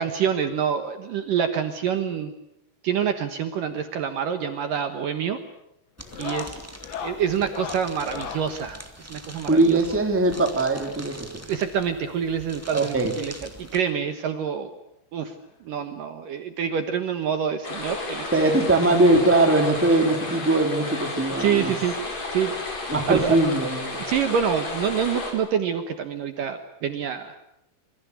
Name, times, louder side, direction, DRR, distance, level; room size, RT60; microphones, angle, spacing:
voice 1, 0.0-2.3 2.8-5.4 6.2-6.6 7.0-8.8 9.1-9.8 11.5-14.7 15.1-15.3 15.6-18.3 18.6-18.7 21.4-22.5 23.1-23.4 24.0-27.4, right 8 dB, 65° right, 7 dB, 2.4 m, -26 dB
sound 1, 4.5-4.8 5.1-5.5 6.0-8.5 9.8-11.2 12.3-12.4 12.6-12.7 13.2-13.3 14.5-14.6 16.0-16.1, left 7 dB, 75° left, 4.5 m, -38 dB
sound 2, 6.0-13.8, right 1 dB, 20° right, 0.4 m, -43 dB
voice 2, 9.4-11.3 12.7-13.1 18.3-21.7 22.9-24.0, right 2 dB, 5° right, 3 dB, 2.3 m, -21 dB
sound 3, 17.6-25.3, left 2 dB, 35° left, 5.9 m, -32 dB
26.5 x 23.5 x 8.2 m, 0.79 s
omnidirectional pair, 5.3 m